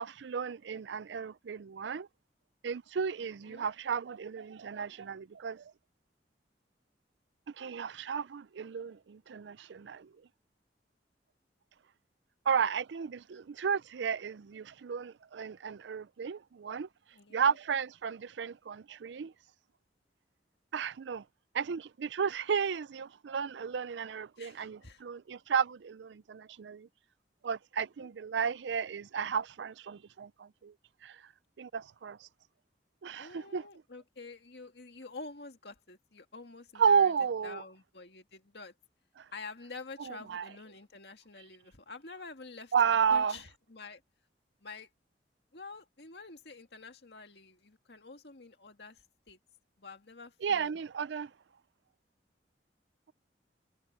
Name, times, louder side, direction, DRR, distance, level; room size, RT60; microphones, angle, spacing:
voice 1, 0.0-2.1 2.6-5.7 7.6-10.1 12.5-16.9 17.3-19.3 20.7-21.2 21.5-26.9 27.4-30.7 31.0-31.2 31.6-32.3 33.0-33.7 36.8-37.6 39.2-39.3 40.0-40.5 42.7-43.4 50.4-51.3, right 6 dB, 90° right, 0.4 m, -33 dB
voice 2, 3.2-3.7 17.1-17.6 24.4-25.0 28.0-28.1 33.2-37.1 37.4-38.7 39.3-44.0 44.6-44.9 45.5-49.4 49.8-50.8, left 3 dB, 65° left, 2.0 m, -48 dB
head